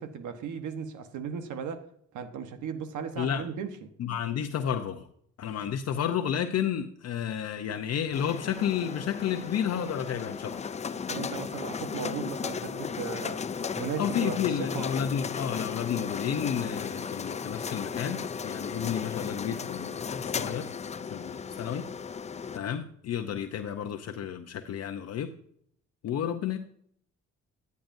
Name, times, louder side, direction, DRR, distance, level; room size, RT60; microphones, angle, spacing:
voice 1, 0.0-1.9 2.1-3.9 11.1-13.4 13.8-14.9, right 6 dB, 75° right, 1.1 m, -36 dB
voice 2, 4.0-5.1 5.4-10.7 14.0-20.7 21.0-21.9 22.5-25.3 26.0-26.6, left 8 dB, 55° left, 0.7 m, -31 dB
sound 1, 8.1-22.6, left 6 dB, 25° left, 0.4 m, -35 dB
10.0 x 9.4 x 2.6 m
cardioid pair, 90°, 30 cm